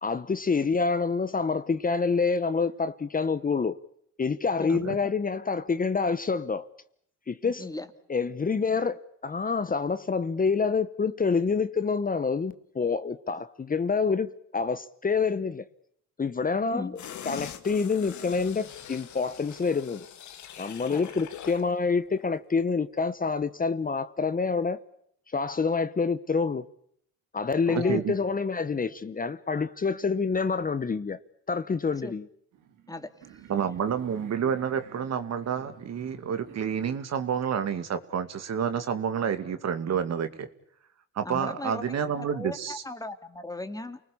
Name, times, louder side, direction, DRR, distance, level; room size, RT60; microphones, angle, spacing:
voice 1, 0.0-3.8 4.2-6.7 7.3-7.6 8.1-15.6 16.2-16.9 17.2-20.1 20.6-24.8 25.3-26.6 27.3-31.2 31.5-32.2, left 5 dB, 30° left, 1.1 m, -27 dB
voice 2, 7.4-7.9 16.7-17.1 20.9-21.1 27.7-28.0 32.0-32.1 32.9-33.1 41.2-44.0, left 2 dB, 10° left, 2.3 m, -38 dB
sound 1, 17.0-21.7 22.1-22.2, left 9 dB, 70° left, 2.2 m, -43 dB
voice 3, 27.7-28.1 33.5-40.5 41.2-42.8, right 7 dB, 60° right, 2.4 m, -29 dB
sound 2, 32.5-36.9, right 9 dB, 90° right, 2.8 m, -50 dB
29.0 x 20.0 x 8.6 m
cardioid pair, 90°, 30 cm